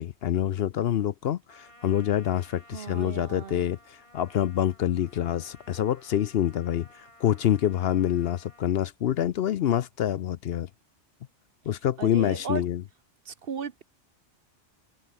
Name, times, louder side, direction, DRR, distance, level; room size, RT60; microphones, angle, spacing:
voice 1, 0.0-10.7 11.7-12.8, left 11 dB, 65° left, 0.7 m, -26 dB
Trumpet, 1.5-8.8, left 1 dB, 25° left, 5.9 m, -55 dB
voice 2, 2.7-3.7 12.0-12.6 13.3-13.8, right 6 dB, 55° right, 1.1 m, -36 dB
open air
omnidirectional pair, 1.2 m